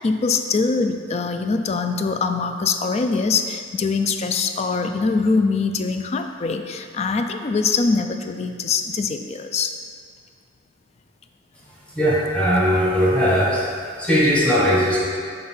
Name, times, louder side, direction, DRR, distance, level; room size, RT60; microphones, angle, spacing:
voice 1, 0.0-9.8, left 4 dB, 35° left, 7 dB, 0.3 m, -23 dB
voice 2, 11.9-13.6 14.0-15.0, equal, 5° left, -7 dB, 1.3 m, -18 dB
5.2 x 4.0 x 5.5 m, 2.1 s
head